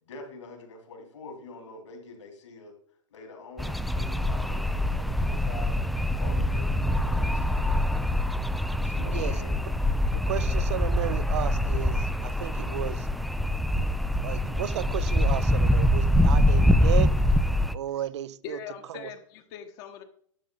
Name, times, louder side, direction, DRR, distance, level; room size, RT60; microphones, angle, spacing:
voice 1, 0.0-2.7 3.1-8.1 8.8-9.6, left 3 dB, 65° left, 3.4 m, -45 dB
sound 1, 3.6-17.7, left 1 dB, ahead, 0.4 m, -24 dB
voice 2, 10.2-13.1 14.2-17.1 17.7-18.6 19.0-19.1, right 11 dB, 60° right, 0.6 m, -33 dB
voice 3, 18.4-20.0, left 8 dB, 45° left, 1.3 m, -41 dB
12.0 x 8.1 x 3.9 m
figure-of-eight pair, 100°, 16 cm